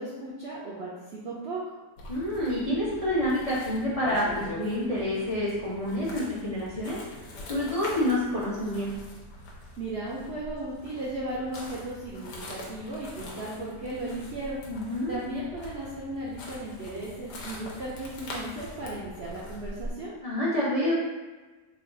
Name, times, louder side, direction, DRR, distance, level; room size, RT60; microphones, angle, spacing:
voice 1, 0.0-1.6 9.8-14.6 15.1-20.1, right 1 dB, 65° right, -7 dB, 0.6 m, -36 dB
sound 1, 2.0-19.9, left 2 dB, 85° left, 1.3 m, -42 dB
voice 2, 2.1-7.0 7.5-8.9 14.7-15.2 20.2-20.9, left 1 dB, 60° left, -8 dB, 0.3 m, -28 dB
3.2 x 2.3 x 3.7 m, 1.3 s
omnidirectional pair, 1.7 m